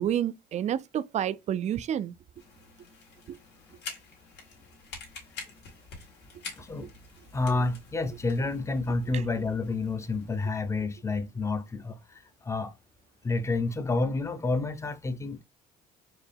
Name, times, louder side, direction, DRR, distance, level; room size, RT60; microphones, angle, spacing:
voice 1, 0.0-2.1 3.3-3.4, right 10 dB, 45° right, 0.4 m, -29 dB
sound 1, 2.4-10.5, left 4 dB, 80° left, 1.8 m, -47 dB
voice 2, 6.5-6.9 7.3-12.7 13.2-15.4, left 3 dB, 15° left, 0.6 m, -29 dB
4.4 x 2.8 x 3.4 m
cardioid pair, 110°, 17 cm